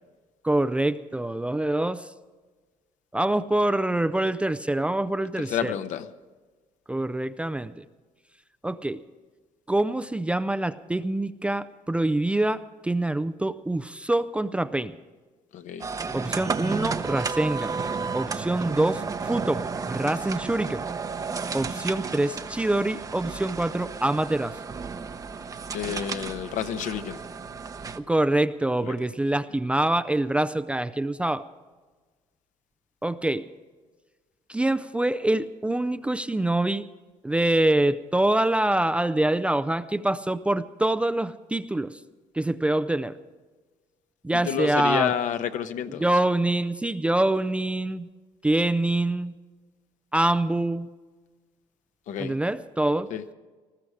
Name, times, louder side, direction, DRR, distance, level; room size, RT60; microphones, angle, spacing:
voice 1, 0.4-2.1 3.1-5.7 6.9-7.8 8.6-9.0 9.7-15.0 16.1-17.8 18.1-20.8 21.5-24.6 27.9-31.4 33.0-33.4 34.5-36.9 37.2-42.0 42.3-43.2 44.2-45.1 46.0-48.1 48.4-49.3 50.1-50.9 52.2-53.1, right 1 dB, 10° right, 12 dB, 0.4 m, -25 dB
voice 2, 5.4-6.1 15.5-15.9 25.7-27.2 28.8-28.9 44.3-46.2 52.1-52.3 53.1-53.2, left 9 dB, 65° left, 9 dB, 1.0 m, -30 dB
sound 1, 15.8-28.0, right 5 dB, 25° right, 0.8 m, -32 dB
20.0 x 14.0 x 5.0 m, 1.3 s
cardioid pair, 120°, 14 cm